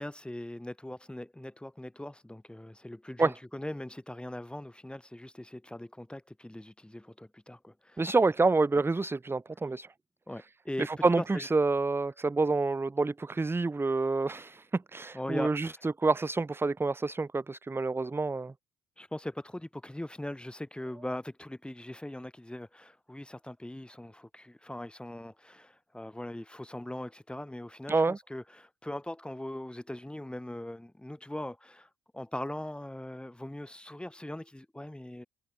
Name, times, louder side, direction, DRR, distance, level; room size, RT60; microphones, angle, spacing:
voice 1, 0.0-8.0 10.3-10.9 11.2-11.5 15.1-15.7 19.0-35.3, left 1 dB, 5° left, 7.3 m, -40 dB
voice 2, 8.0-9.9 10.8-18.5 27.9-28.2, right 3 dB, 15° right, 0.8 m, -28 dB
cardioid pair, 110°, 17 cm